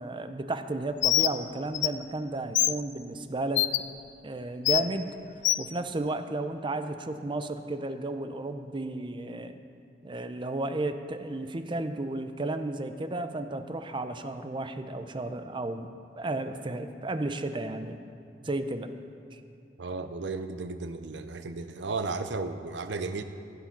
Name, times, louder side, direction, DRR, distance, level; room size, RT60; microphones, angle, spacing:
voice 1, 0.0-3.7 4.2-5.1 5.6-9.6 10.0-15.9 16.2-18.0 18.4-18.9 19.3-19.4, right 2 dB, 30° right, 8 dB, 0.6 m, -33 dB
Bird, 1.0-1.3 1.7-1.9 2.6-2.7 3.6-3.8 4.7-4.8 5.4-5.6, left 15 dB, 85° left, 0.4 m, -23 dB
voice 2, 19.8-23.2, right 3 dB, 80° right, 9 dB, 0.6 m, -34 dB
15.5 x 8.4 x 5.9 m, 2.5 s
head